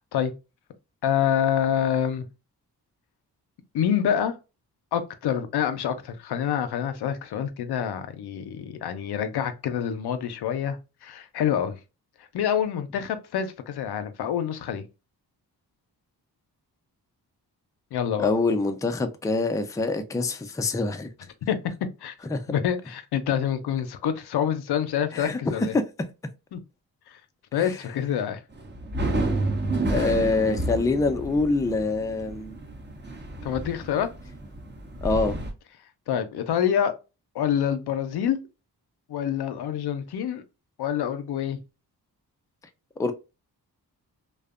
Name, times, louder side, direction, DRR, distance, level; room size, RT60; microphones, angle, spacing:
voice 1, 1.0-2.3 3.7-4.3 4.9-11.8 12.3-14.8 17.9-18.3 21.5-21.6 22.0-22.1 22.5-25.8 26.5-26.6 27.1-27.2 27.5-28.4 33.4-34.1 36.1-37.0 37.3-38.4 39.1-40.4 40.8-41.6, left 9 dB, 75° left, 0.5 m, -26 dB
voice 2, 18.2-21.1 22.3-22.4 25.1-25.7 27.5-27.8 29.9-32.6 35.0-35.4 43.0-43.1, left 3 dB, 10° left, 0.4 m, -25 dB
sound 1, 28.6-35.5, right 2 dB, 30° right, 0.7 m, -30 dB
2.6 x 2.1 x 2.3 m
cardioid pair, 55°, 39 cm